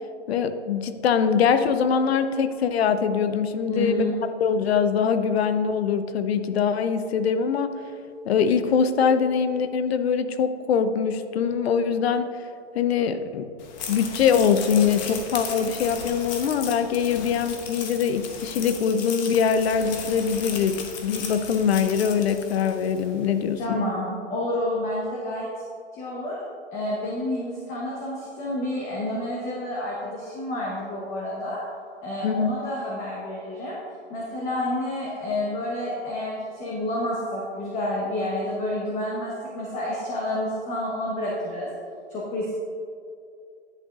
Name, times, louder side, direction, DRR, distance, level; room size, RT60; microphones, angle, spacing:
voice 1, 0.3-4.0 4.4-7.7 8.3-12.3 12.7-13.5 13.9-20.7 21.0-23.8 32.2-32.5, left 6 dB, 60° left, 10 dB, 0.7 m, -23 dB
voice 2, 3.7-4.1 23.6-25.5 25.9-26.4 26.7-31.6 32.0-33.8 34.1-41.7 42.1-42.5, left 1 dB, 20° left, -5 dB, 1.1 m, -29 dB
sound 1, 13.6-23.1, left 6 dB, 40° left, 1.0 m, -36 dB
10.5 x 8.2 x 2.4 m, 2.4 s
hypercardioid pair, 140°, 35 cm